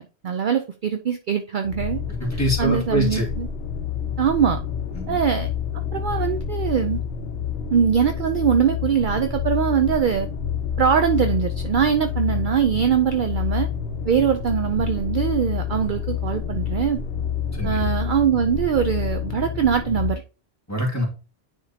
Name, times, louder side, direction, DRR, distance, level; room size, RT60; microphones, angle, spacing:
voice 1, 0.2-2.0 2.6-3.5 4.2-4.6 5.1-5.5 5.9-7.0 7.7-10.3 10.8-13.7 14.1-17.0 17.6-20.2, right 8 dB, 60° right, 0.6 m, -22 dB
sound 1, 1.6-20.1, left 8 dB, 70° left, 1.0 m, -28 dB
voice 2, 2.2-3.3 4.9-5.2 17.5-17.9 20.7-21.0, equal, 15° left, 1.9 m, -24 dB
9.4 x 3.6 x 2.8 m
omnidirectional pair, 1.1 m